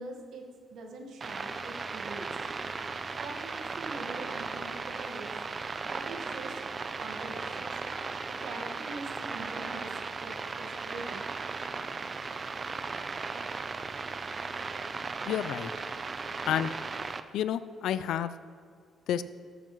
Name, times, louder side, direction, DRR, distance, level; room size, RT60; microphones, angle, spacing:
voice 1, 0.0-2.4 3.2-5.3 5.8-6.6 6.9-7.8 8.3-11.3, right 3 dB, 75° right, 2 dB, 1.4 m, -43 dB
sound 1, 1.2-17.2, right 4 dB, 35° right, 0.5 m, -37 dB
voice 2, 15.2-15.7 16.4-16.7 17.3-18.3 19.1-19.2, left 10 dB, 80° left, 14 dB, 0.3 m, -30 dB
13.0 x 7.1 x 3.0 m, 2.2 s
cardioid pair, 90°, 0 cm